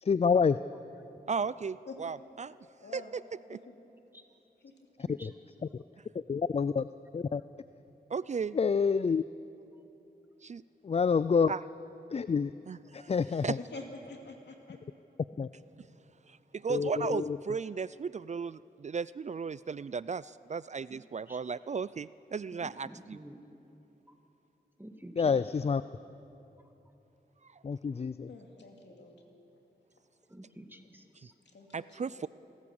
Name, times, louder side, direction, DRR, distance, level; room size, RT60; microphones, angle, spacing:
voice 1, 0.1-0.6 5.2-5.3 6.3-6.9 7.1-7.4 8.5-9.2 10.8-11.5 12.1-12.5 12.9-13.6 15.4-15.5 16.7-17.3 25.2-25.8 27.6-28.3, left 5 dB, 35° left, 15 dB, 0.4 m, -27 dB
voice 2, 1.3-2.5 2.9-3.2 8.1-8.6 10.4-10.6 11.5-11.6 12.7-13.2 13.4-13.6 16.3-23.2 27.4-27.6 31.7-32.3, right 5 dB, 40° right, 18 dB, 0.4 m, -35 dB
voice 3, 2.8-3.1 13.6-14.8 28.3-29.1 30.6-30.9 31.5-32.3, left 3 dB, 85° left, 2 dB, 2.5 m, -47 dB
voice 4, 22.6-23.6 24.8-25.3 30.3-31.3, right 1 dB, 10° right, 6 dB, 1.8 m, -49 dB
27.0 x 13.5 x 7.1 m, 2.9 s
cardioid pair, 55°, 18 cm